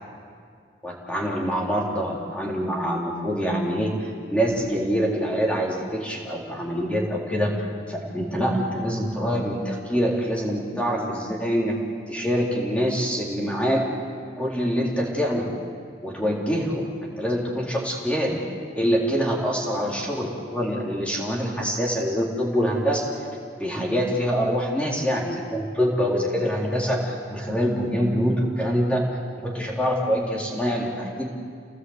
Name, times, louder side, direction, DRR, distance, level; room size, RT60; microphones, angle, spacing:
voice 1, 0.8-7.5 7.9-11.7 12.1-13.8 14.4-15.5 16.0-16.9 17.2-18.4 18.7-23.0 23.6-29.1 29.4-31.3, equal, 5° left, -3 dB, 3.7 m, -25 dB
29.0 x 18.0 x 8.1 m, 2.2 s
head